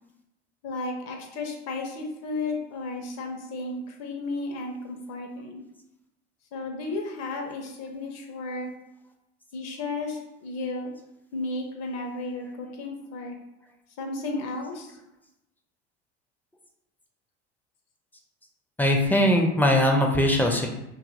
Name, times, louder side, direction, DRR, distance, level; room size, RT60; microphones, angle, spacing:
voice 1, 0.6-5.6 6.5-8.7 9.5-10.9 11.3-13.4 14.0-15.0, left 2 dB, 50° left, 3 dB, 0.7 m, -33 dB
voice 2, 18.8-20.7, left 1 dB, 5° left, 2 dB, 0.4 m, -21 dB
2.7 x 2.5 x 2.5 m, 0.87 s
hypercardioid pair, 70°, 33 cm